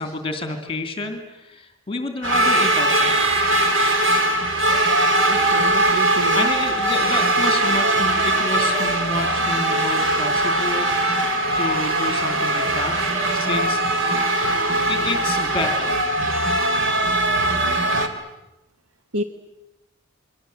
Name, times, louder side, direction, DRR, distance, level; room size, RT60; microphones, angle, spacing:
voice 1, 0.0-3.1 6.3-11.1 11.6-13.0 13.3-14.2 14.8-16.0, left 2 dB, 25° left, 7 dB, 2.8 m, -29 dB
sound 1, 2.2-18.1, right 2 dB, 60° right, 3.0 m, -20 dB
voice 2, 5.2-6.5 19.1-19.2, right 2 dB, 90° right, 8 dB, 1.2 m, -29 dB
28.5 x 23.0 x 7.9 m, 0.93 s
head